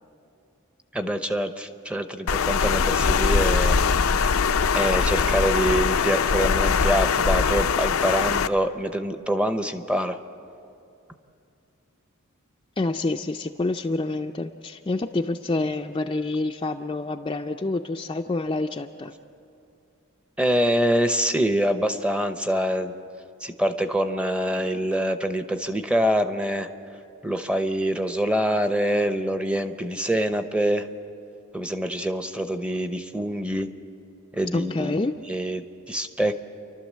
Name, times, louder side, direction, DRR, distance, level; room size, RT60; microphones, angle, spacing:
voice 1, 0.9-3.8 4.7-10.2 20.4-22.9 23.4-26.7 27.2-30.8 31.5-33.7 34.3-34.9 35.3-36.4, equal, 5° right, 9 dB, 0.7 m, -25 dB
Water, 2.3-8.5, left 5 dB, 85° left, 0.5 m, -22 dB
voice 2, 12.8-19.1 34.5-35.2, left 2 dB, 25° left, 4 dB, 0.4 m, -27 dB
30.0 x 12.0 x 7.4 m, 2.6 s
head